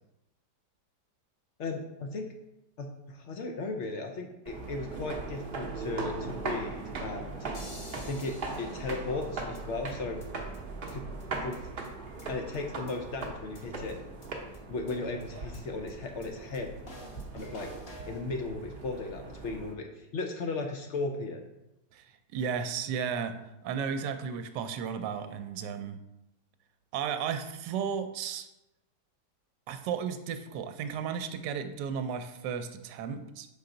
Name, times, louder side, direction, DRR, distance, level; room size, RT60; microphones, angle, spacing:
voice 1, 1.6-2.3 2.8-7.4 8.0-10.2 10.9-11.0 11.4-11.6 12.3-14.0 14.7-16.7 17.3-17.7 18.0-21.4, left 3 dB, 65° left, 4 dB, 0.7 m, -36 dB
sound 1, 4.5-19.7, right 3 dB, 45° right, 0.7 m, -40 dB
sound 2, 7.5-9.6 9.9-10.0 10.2-10.3 10.5-10.6 10.9-11.0 11.2-11.3 11.5-11.6 11.8-12.6 12.9-13.0 13.2-13.3 13.5-13.6 13.9-14.0 14.2-14.3 14.5-14.6 14.9-15.0 15.2-15.3 15.5-15.6 15.9-16.0 16.2-16.3 16.5-16.6 16.9-18.2, equal, 40° left, 1.1 m, -48 dB
voice 2, 21.9-26.0 26.9-28.5 29.7-33.5, right 7 dB, 85° right, 9 dB, 1.2 m, -34 dB
5.5 x 4.7 x 3.8 m, 0.91 s
omnidirectional pair, 1.8 m